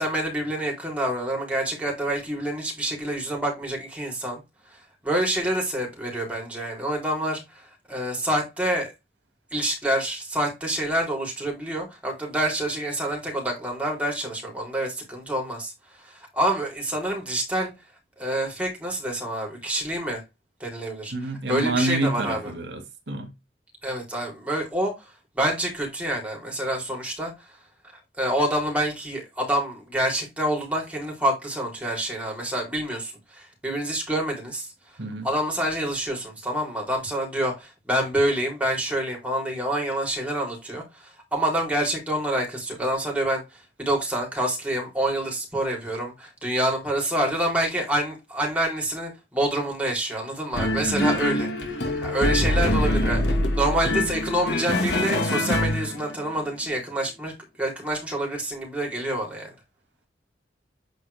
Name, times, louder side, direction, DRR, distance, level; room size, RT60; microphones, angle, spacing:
voice 1, 0.0-4.4 4.7-4.8 5.0-8.9 9.5-15.7 16.0-17.7 18.2-20.2 20.6-22.5 23.8-25.1 25.3-27.5 28.2-34.7 35.2-51.5 52.0-57.3 57.6-59.5, right 1 dB, 10° right, 3.6 m, -27 dB
voice 2, 21.1-23.3 35.0-35.3 50.8-51.2, right 2 dB, 80° right, 2.1 m, -28 dB
sound 1, 50.5-56.3, left 1 dB, 80° left, 1.9 m, -24 dB
9.5 x 4.4 x 3.4 m
head